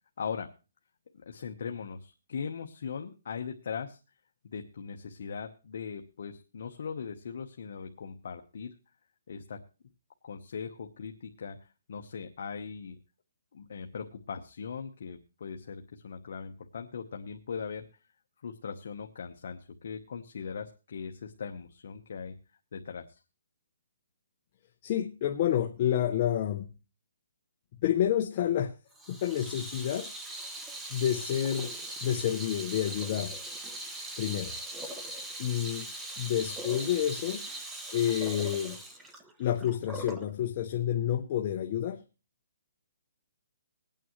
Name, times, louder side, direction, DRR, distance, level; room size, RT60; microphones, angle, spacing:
voice 1, 0.2-0.5 1.1-4.0 4.4-8.7 9.3-9.6 10.2-11.6 11.9-13.0 13.5-17.9 18.4-22.3 22.7-23.2, left 6 dB, 50° left, 4 dB, 1.0 m, -39 dB
voice 2, 24.8-26.7 27.8-28.8 29.1-30.1 30.9-31.8 32.0-33.4 34.2-34.6 35.4-35.9 36.2-37.4 37.9-38.8 39.4-42.0, left 10 dB, 30° left, 5 dB, 0.6 m, -29 dB
Water tap faucet / Sink (filling or washing), 28.9-40.3, right 1 dB, 5° right, 0.7 m, -40 dB
21.5 x 9.0 x 3.1 m, 0.32 s
hypercardioid pair, 175°, 0 cm